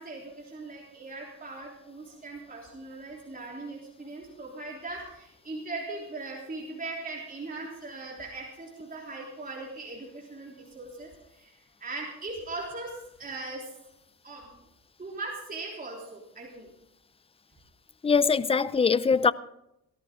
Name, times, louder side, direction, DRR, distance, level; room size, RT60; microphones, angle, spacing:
voice 1, 0.0-13.6 14.2-14.6 15.0-16.7, right 3 dB, 30° right, 3.5 m, -39 dB
voice 2, 18.0-19.3, left 5 dB, 20° left, 0.5 m, -22 dB
17.5 x 13.5 x 3.8 m
cardioid pair, 90°, 30 cm